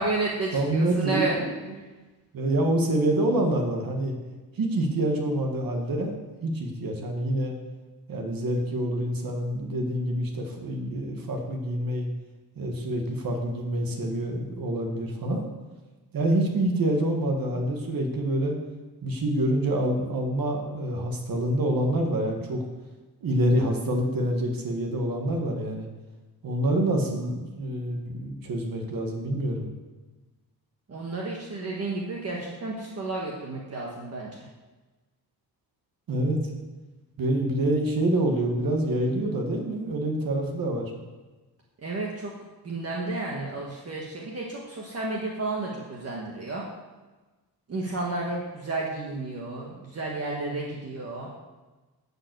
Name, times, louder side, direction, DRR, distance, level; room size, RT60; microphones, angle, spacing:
voice 1, 0.0-1.3 30.9-34.3 41.8-42.3 42.6-46.6 47.7-51.3, right 2 dB, 40° right, -2 dB, 1.4 m, -31 dB
voice 2, 0.5-1.4 1.7-1.8 2.3-4.1 4.6-6.1 6.4-7.5 8.1-12.1 12.6-15.5 16.1-18.5 19.0-22.6 23.2-25.9 26.4-29.7 36.1-36.4 37.2-40.9, right 1 dB, 60° right, 2 dB, 1.8 m, -26 dB
11.5 x 5.5 x 7.8 m, 1.2 s
wide cardioid pair, 170°, 39 cm